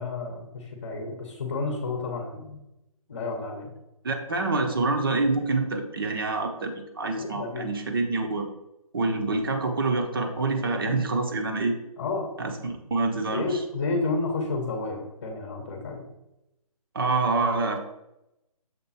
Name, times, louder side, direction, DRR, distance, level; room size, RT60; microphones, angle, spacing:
voice 1, 0.0-2.6 3.1-3.7 7.2-7.7 10.9-11.1 12.0-12.3 13.3-16.1, left 3 dB, 30° left, 2 dB, 1.0 m, -31 dB
voice 2, 4.0-8.5 8.9-11.7 12.4-13.5 16.9-17.8, right 3 dB, 35° right, 5 dB, 1.0 m, -26 dB
6.9 x 3.7 x 5.6 m, 0.90 s
hypercardioid pair, 170°, 19 cm